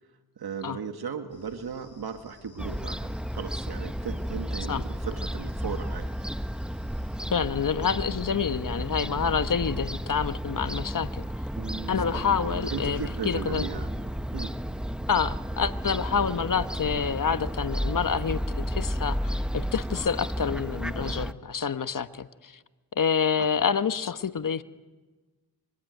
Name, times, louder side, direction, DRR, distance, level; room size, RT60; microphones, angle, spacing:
voice 1, 0.4-6.1 12.1-12.2 12.7-13.9 14.3-14.5 23.4-23.5, right 6 dB, 65° right, 7 dB, 1.8 m, -36 dB
sound 1, 1.3-7.3, left 5 dB, 70° left, 5.1 m, -54 dB
Fowl / Gull seagull, 2.6-21.3, equal, ahead, 0.8 m, -32 dB
voice 2, 7.3-11.2 11.9-13.6 15.1-22.5 23.0-24.6, left 6 dB, 50° left, 11 dB, 1.3 m, -28 dB
sound 2, 11.6-17.8, right 5 dB, 35° right, 1.8 m, -45 dB
25.5 x 24.0 x 9.4 m, 1.3 s
cardioid pair, 65°, 40 cm